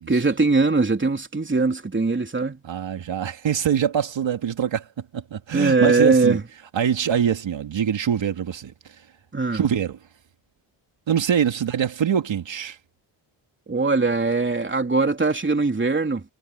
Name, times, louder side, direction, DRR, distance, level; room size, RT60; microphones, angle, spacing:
voice 1, 0.1-2.6 5.5-6.4 9.3-9.6 13.7-16.2, right 3 dB, 25° right, 3.4 m, -21 dB
voice 2, 2.6-4.9 5.1-6.4 6.7-9.0 9.5-10.0 11.1-12.8, right 8 dB, 65° right, 2.8 m, -24 dB
cardioid pair, 65°, 48 cm